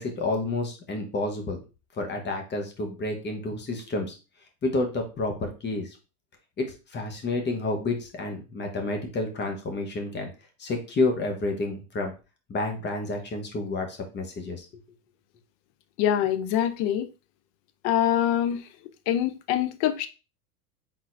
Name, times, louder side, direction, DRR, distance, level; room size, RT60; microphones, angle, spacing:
voice 1, 0.0-1.6 1.9-4.2 4.6-6.0 6.6-10.3 10.6-12.1 12.5-14.8, left 2 dB, 25° left, 1.1 m, -30 dB
voice 2, 16.0-17.1 17.8-18.7 19.1-20.1, left 10 dB, 55° left, 0.7 m, -24 dB
4.3 x 3.8 x 2.6 m
supercardioid pair, 115°, 43 cm